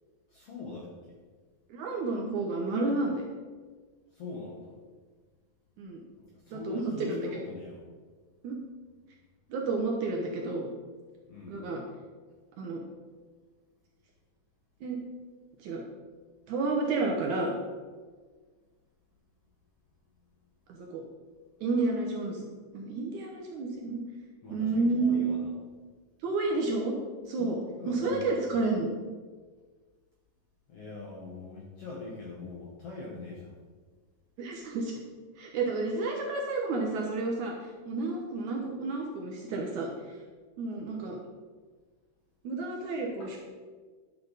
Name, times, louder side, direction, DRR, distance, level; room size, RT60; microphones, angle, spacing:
voice 1, 0.3-1.2 4.1-4.7 6.2-7.8 11.3-11.6 24.4-25.5 27.4-28.6 30.7-33.5 43.2-43.3, left 3 dB, 60° left, -3 dB, 1.6 m, -42 dB
voice 2, 1.7-3.2 5.8-6.0 6.5-7.3 8.4-8.6 9.5-10.7 11.5-11.8 12.6-12.8 14.8-15.0 15.6-15.8 16.5-17.5 20.8-21.0 21.6-22.5 22.7-24.0 24.5-25.4 26.2-26.9 27.3-27.6 27.9-28.9 34.4-34.9 35.4-37.5 37.9-39.9 40.6-41.2 42.4-43.4, right 3 dB, 70° right, 0 dB, 2.0 m, -30 dB
11.0 x 6.8 x 4.0 m, 1.5 s
omnidirectional pair, 4.2 m